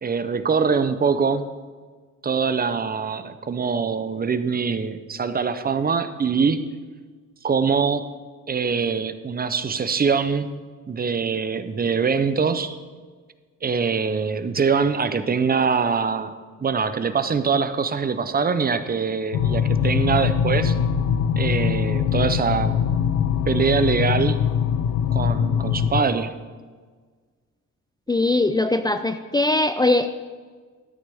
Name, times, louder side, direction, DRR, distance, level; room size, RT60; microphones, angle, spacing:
voice 1, 0.0-1.4 2.2-6.6 7.4-8.0 8.5-10.5 10.9-12.8 13.6-16.3 16.6-20.8 21.4-22.8 23.5-24.5 25.1-26.3, right 5 dB, 30° right, 11 dB, 0.6 m, -23 dB
sound 1, 19.3-26.0, left 8 dB, 80° left, 0.6 m, -22 dB
voice 2, 28.1-30.1, left 2 dB, 15° left, 9 dB, 0.4 m, -21 dB
13.0 x 9.7 x 3.5 m, 1.5 s
cardioid pair, 105°, 30 cm